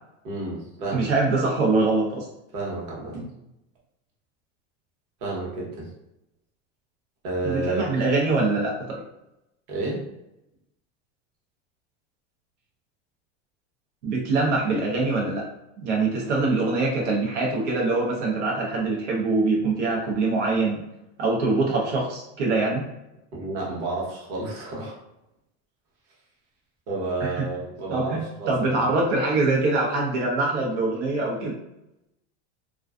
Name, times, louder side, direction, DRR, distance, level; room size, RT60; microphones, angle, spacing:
voice 1, 0.2-1.1 2.5-3.3 5.2-5.9 7.2-7.9 9.7-10.1 23.3-25.0 26.9-29.0, right 2 dB, 50° right, -4 dB, 1.0 m, -31 dB
voice 2, 0.9-2.3 7.4-9.0 14.0-15.4 15.8-20.8 21.2-22.8 27.2-27.4 27.9-31.5, right 3 dB, 85° right, -3 dB, 0.7 m, -24 dB
2.4 x 2.3 x 2.3 m, 0.89 s
supercardioid pair, 160°, 35 cm